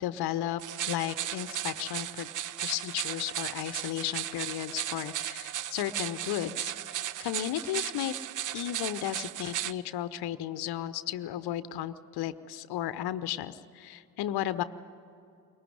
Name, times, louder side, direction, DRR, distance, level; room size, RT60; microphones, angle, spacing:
voice 1, 0.0-2.3 2.6-8.1 8.5-14.6, left 12 dB, 50° left, 14 dB, 0.9 m, -34 dB
sound 1, 0.6-9.7, right 12 dB, 40° right, 0.6 m, -36 dB
23.0 x 19.0 x 9.5 m, 2.6 s
figure-of-eight pair, 40°, 49 cm